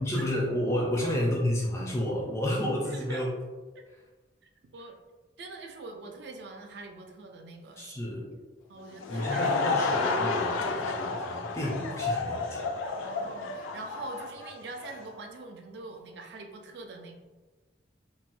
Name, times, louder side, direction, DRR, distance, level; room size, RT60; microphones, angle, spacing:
voice 1, 0.0-3.3 7.8-8.3 9.1-12.6, left 1 dB, 15° left, -3 dB, 0.4 m, -30 dB
voice 2, 1.0-1.4 2.9-3.2 3.7-3.8 4.7-5.0 5.4-8.2 8.7-9.5 13.0-17.2, right 3 dB, 55° right, 3 dB, 0.4 m, -43 dB
Laughter / Crowd, 8.8-15.1, left 4 dB, 85° left, 0.4 m, -31 dB
4.2 x 2.1 x 2.5 m, 1.3 s
head